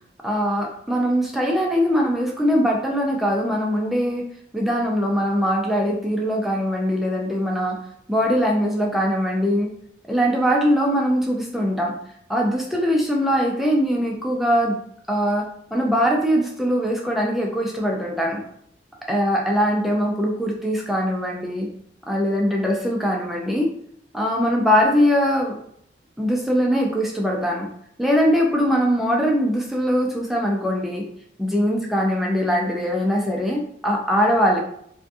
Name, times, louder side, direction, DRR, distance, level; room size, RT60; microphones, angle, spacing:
voice 1, 0.2-4.2 4.5-7.8 8.1-9.7 10.1-11.9 12.3-14.8 15.1-15.4 15.7-18.4 19.1-21.7 22.1-23.7 24.1-25.6 26.2-27.7 28.0-31.0 31.4-34.6, equal, ahead, -1 dB, 0.3 m, -21 dB
2.5 x 2.3 x 2.6 m, 0.68 s
head